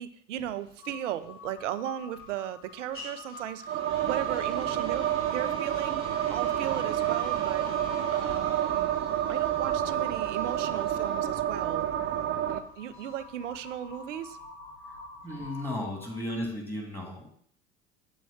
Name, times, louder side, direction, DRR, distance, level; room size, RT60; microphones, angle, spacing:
voice 1, 0.0-7.7 8.1-9.0 9.3-11.9 12.5-14.4, right 11 dB, 80° right, 12 dB, 0.6 m, -36 dB
sound 1, 0.6-14.4, left 1 dB, 35° left, 2.5 m, -49 dB
Crow, 0.8-16.3, left 4 dB, 60° left, 1.1 m, -47 dB
sound 2, 3.7-12.6, right 11 dB, 35° right, 0.5 m, -29 dB
voice 2, 15.2-17.4, left 1 dB, 5° left, 1 dB, 2.3 m, -35 dB
7.2 x 3.1 x 5.7 m, 0.63 s
hypercardioid pair, 75°, 36 cm